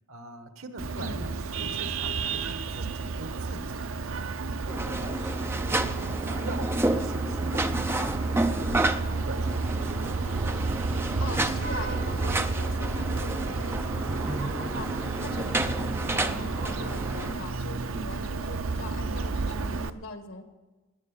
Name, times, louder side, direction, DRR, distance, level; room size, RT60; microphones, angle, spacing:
voice 1, 0.1-4.2 4.4-4.9 5.1-5.4 5.6-5.9 6.2-9.0 9.3-10.2, right 2 dB, 90° right, 9 dB, 1.4 m, -43 dB
Vehicle horn car horn honking, 0.8-19.9, right 3 dB, 75° right, 0.6 m, -31 dB
voice 2, 0.9-1.4 11.2-20.4, left 2 dB, 75° left, 6 dB, 2.0 m, -41 dB
sound 1, 4.7-17.3, right 2 dB, 10° right, 0.6 m, -31 dB
18.5 x 10.0 x 7.1 m, 1.2 s
head